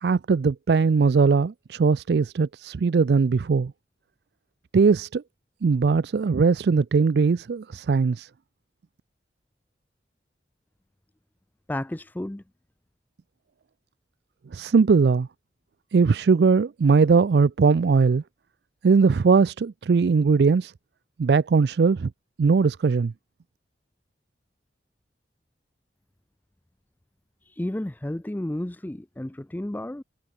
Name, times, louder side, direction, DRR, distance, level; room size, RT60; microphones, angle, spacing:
voice 1, 0.0-3.7 4.7-5.2 5.6-8.3 14.5-15.3 15.9-18.2 18.8-20.7 21.2-22.1 22.4-23.1, right 5 dB, 65° right, 0.4 m, -20 dB
voice 2, 11.7-12.4 27.4-30.0, left 1 dB, 10° left, 0.4 m, -32 dB
head